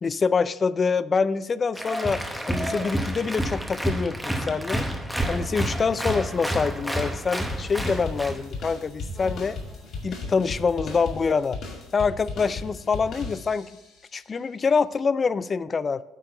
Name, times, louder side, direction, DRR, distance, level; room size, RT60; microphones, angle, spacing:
voice 1, 0.0-4.8 5.3-9.6 10.0-11.6 11.9-13.7 14.1-16.0, left 5 dB, 25° left, 17 dB, 0.3 m, -25 dB
Applause, 1.7-8.4, right 1 dB, ahead, 0.8 m, -29 dB
sound 1, 5.2-10.0, right 1 dB, 20° right, 1.8 m, -43 dB
sound 2, 7.5-13.9, left 3 dB, 55° left, 2.1 m, -36 dB
8.8 x 4.6 x 6.6 m, 0.99 s
cardioid pair, 135°, 0 cm